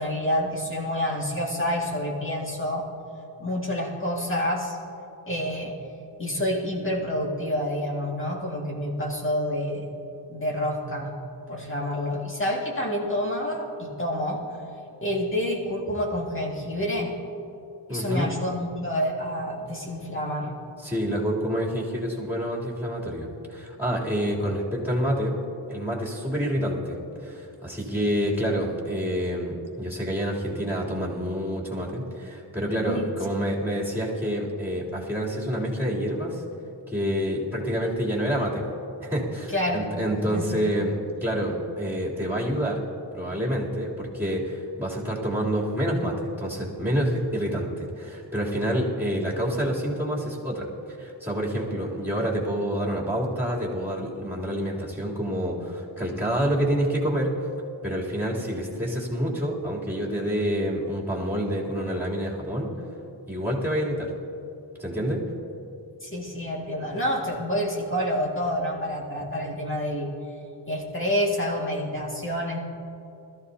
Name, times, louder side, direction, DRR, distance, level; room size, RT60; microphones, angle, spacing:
voice 1, 0.0-2.9 3.4-4.8 5.3-5.8 6.2-9.9 10.3-11.2 11.5-14.4 15.0-17.1 17.9-20.6 27.9-28.0 32.8-33.1 39.5-39.9 40.3-40.5 66.0-70.1 70.7-72.6, equal, 25° left, -3 dB, 2.2 m, -28 dB
voice 2, 17.9-18.3 20.8-25.4 25.7-36.4 36.9-38.6 39.0-42.9 43.1-50.7 51.0-57.3 57.8-62.7 63.3-64.1 64.8-65.3, equal, 5° right, -5 dB, 3.2 m, -27 dB
21.0 x 14.0 x 2.8 m, 2.7 s
wide cardioid pair, 70°, 46 cm